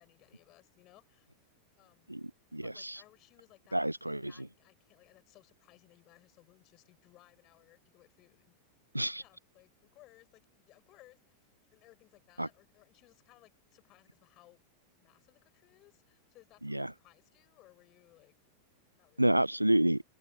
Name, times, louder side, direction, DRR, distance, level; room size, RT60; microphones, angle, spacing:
voice 1, 0.0-1.3 1.8-2.2 2.6-3.9 4.2-8.5 8.9-14.6 15.0-18.3 18.9-19.4, left 18 dB, 40° left, 6.0 m, -62 dB
voice 2, 2.1-3.0 3.7-4.5 8.9-9.2 12.4-12.5 16.6-16.9 19.2-20.0, right 1 dB, 85° right, 0.4 m, -29 dB
open air
figure-of-eight pair, 90°, 0 cm